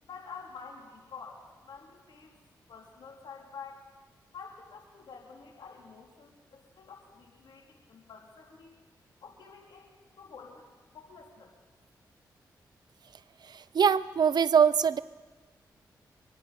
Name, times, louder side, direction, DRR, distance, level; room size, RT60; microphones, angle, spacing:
voice 1, 0.0-2.3 2.7-3.8 4.3-8.8 9.2-10.7 10.9-11.5, left 5 dB, 75° left, -1 dB, 3.8 m, -48 dB
voice 2, 13.5-15.0, right 7 dB, 65° right, 17 dB, 0.6 m, -23 dB
25.5 x 10.0 x 5.4 m, 1.4 s
supercardioid pair, 45°, 8 cm